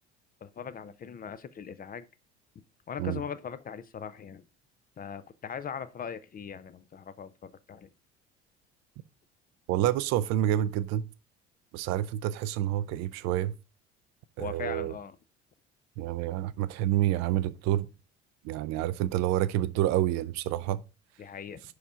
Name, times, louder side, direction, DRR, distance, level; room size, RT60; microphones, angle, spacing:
voice 1, 0.4-2.1 2.9-4.4 5.0-7.9 14.4-15.2 21.2-21.6, left 7 dB, 25° left, 0.5 m, -40 dB
voice 2, 9.7-11.0 11.7-13.5 14.4-14.9 16.0-17.9 18.4-20.8, right 13 dB, 50° right, 0.5 m, -28 dB
5.4 x 4.8 x 4.9 m
figure-of-eight pair, 55°, 34 cm